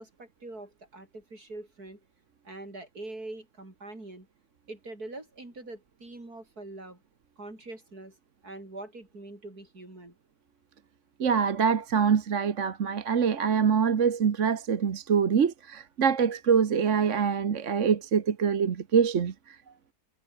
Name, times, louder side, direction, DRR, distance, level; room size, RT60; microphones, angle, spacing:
voice 1, 0.0-2.0 2.4-4.3 4.7-7.0 7.4-8.2 8.4-10.1, right 2 dB, 65° right, 7.2 m, -43 dB
voice 2, 11.2-19.6, right 6 dB, 50° right, 1.5 m, -25 dB
omnidirectional pair, 1.7 m